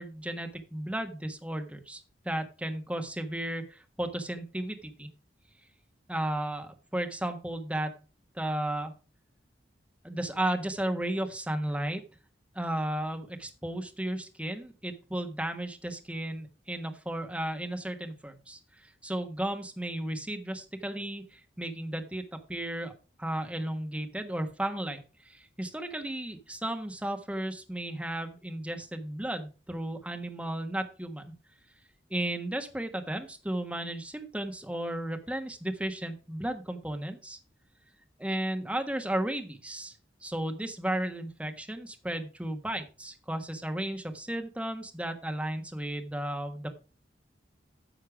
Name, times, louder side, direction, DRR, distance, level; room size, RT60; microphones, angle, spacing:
voice 1, 0.0-5.1 6.1-8.0 8.3-8.9 10.0-12.0 12.5-22.9 23.2-31.2 32.1-37.4 38.2-40.0 40.2-46.7, right 1 dB, 5° right, 5 dB, 1.3 m, -34 dB
10.0 x 6.6 x 4.7 m, 0.33 s
head